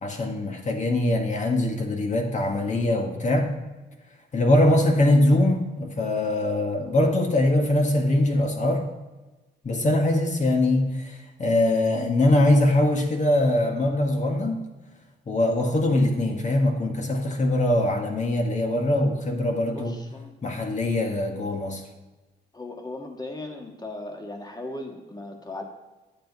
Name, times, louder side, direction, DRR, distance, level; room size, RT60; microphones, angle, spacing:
voice 1, 0.0-3.5 4.3-8.8 9.6-11.1 11.4-14.6 15.3-20.0 20.4-21.8, left 1 dB, 35° left, 3 dB, 1.7 m, -22 dB
voice 2, 19.7-20.3 22.5-25.6, left 2 dB, 20° left, 3 dB, 1.7 m, -37 dB
10.0 x 8.0 x 4.0 m, 1.2 s
cardioid pair, 90°, 20 cm